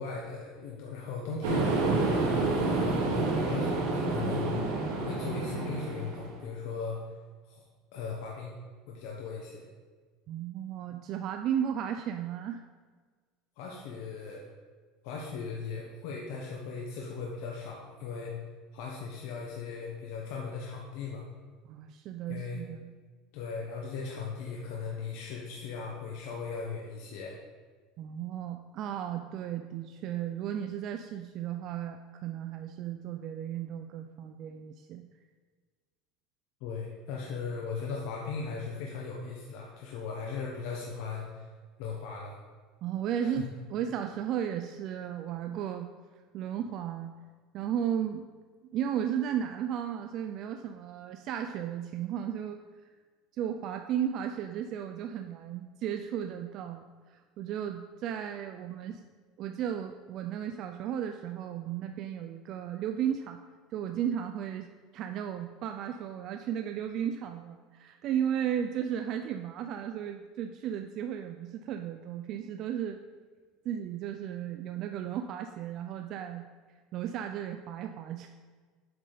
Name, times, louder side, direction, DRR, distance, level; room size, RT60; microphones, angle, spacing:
voice 1, 0.0-4.6 5.0-7.0 7.5-7.6 7.9-8.6 8.9-9.7 13.6-14.5 15.0-18.3 18.7-21.2 22.3-22.6 23.3-27.4 36.6-41.5 41.8-42.4 43.2-43.4, left 5 dB, 70° left, -2 dB, 0.9 m, -38 dB
sound 1, 1.4-6.4, right 3 dB, 85° right, 1.5 m, -29 dB
voice 2, 10.3-12.6 21.6-22.9 28.0-35.1 42.8-45.9 46.3-47.1 47.5-48.2 48.7-52.6 53.4-59.0 59.4-63.4 63.7-73.0 73.6-76.4 76.9-78.3, right 9 dB, 45° right, 6 dB, 0.3 m, -34 dB
7.9 x 4.9 x 3.9 m, 1.5 s
supercardioid pair, 145°, 0 cm